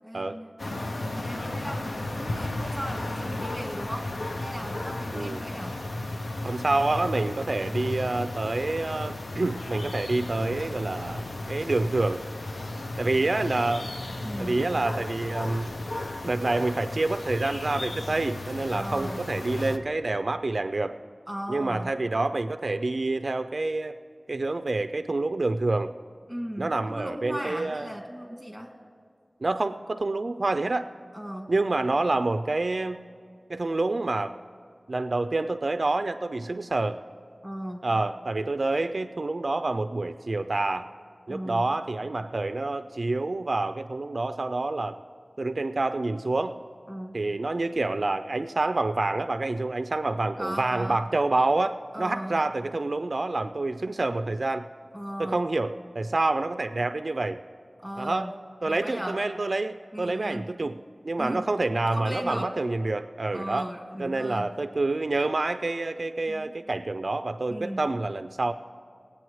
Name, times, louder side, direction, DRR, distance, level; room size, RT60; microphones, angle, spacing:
voice 1, 0.0-4.1 4.4-5.8 14.2-14.6 18.7-19.2 21.3-21.9 26.3-28.7 31.1-31.5 37.4-37.8 41.3-41.7 46.9-47.2 50.4-51.0 51.9-52.4 54.9-55.4 57.8-58.3 58.6-59.2 59.9-60.5 61.2-61.5 61.9-62.5 63.3-64.5 66.3-66.5 67.5-67.8, equal, ahead, 1 dB, 1.9 m, -37 dB
sound 1, 0.6-19.8, left 2 dB, 80° left, 0.6 m, -34 dB
voice 2, 6.4-12.2 13.0-13.9 14.4-15.7 16.2-21.0 21.5-24.0 24.3-25.9 26.6-27.9 29.4-30.9 31.5-33.0 33.5-34.4 34.9-37.0 37.8-40.9 41.3-45.0 45.4-46.6 47.1-54.7 55.2-57.4 58.0-58.3 58.6-60.8 61.0-63.7 64.0-68.5, right 2 dB, 70° right, 9 dB, 0.3 m, -27 dB
20.5 x 8.4 x 3.1 m, 2.2 s
wide cardioid pair, 50°, 0 cm